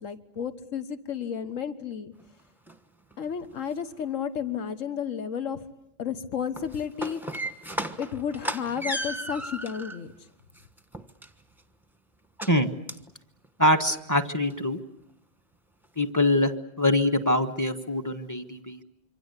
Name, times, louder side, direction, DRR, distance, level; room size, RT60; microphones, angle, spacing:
voice 1, 0.0-2.1 3.2-5.6 6.0-7.2 8.0-10.1, left 7 dB, 85° left, 11 dB, 1.6 m, -32 dB
sound 1, 2.2-2.3 2.7-2.8 3.1-3.7 6.4-10.0 10.5-11.6 12.4-12.6 12.9-13.1 13.4-13.5 13.9-14.0 14.4-14.5, equal, ahead, 1.1 m, -35 dB
voice 2, 13.6-14.8 16.0-16.5 16.8-18.8, left 1 dB, 15° left, 9 dB, 1.4 m, -24 dB
26.5 x 24.5 x 8.2 m, 0.76 s
omnidirectional pair, 1.3 m